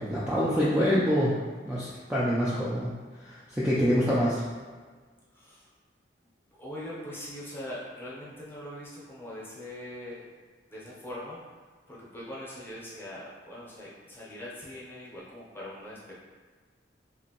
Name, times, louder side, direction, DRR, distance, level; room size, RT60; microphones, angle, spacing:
voice 1, 0.0-1.4 1.6-4.4, equal, 5° right, -8 dB, 0.3 m, -26 dB
voice 2, 6.5-10.3 10.7-11.4 11.9-16.1, left 1 dB, 10° left, -7 dB, 0.7 m, -42 dB
2.9 x 2.6 x 2.8 m, 1.5 s
head